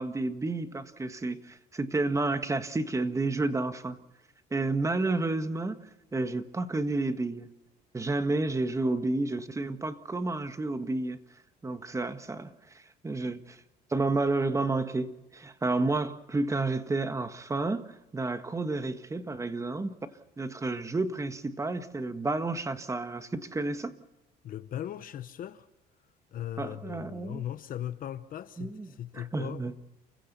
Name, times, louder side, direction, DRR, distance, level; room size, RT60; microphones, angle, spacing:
voice 1, 0.0-4.0 4.5-5.8 6.1-7.5 7.9-11.2 11.6-13.6 13.9-19.9 20.4-23.9 26.6-27.4 28.6-28.9 29.1-29.7, right 2 dB, 20° right, 1.7 m, -31 dB
voice 2, 24.4-25.7 26.3-29.6, left 11 dB, 55° left, 1.0 m, -38 dB
29.0 x 16.0 x 6.9 m
cardioid pair, 110°, 17 cm